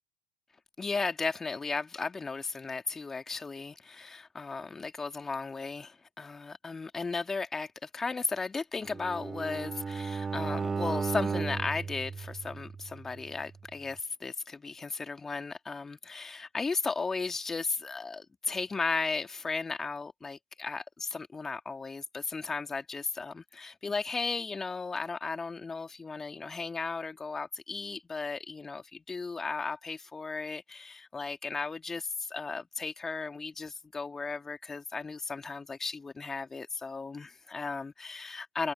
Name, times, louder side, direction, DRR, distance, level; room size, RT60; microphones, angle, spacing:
voice 1, 0.8-38.7, left 4 dB, 15° left, 3.0 m, -35 dB
Bowed string instrument, 8.9-13.0, right 5 dB, 20° right, 6.6 m, -34 dB
figure-of-eight pair, 75°, 2 cm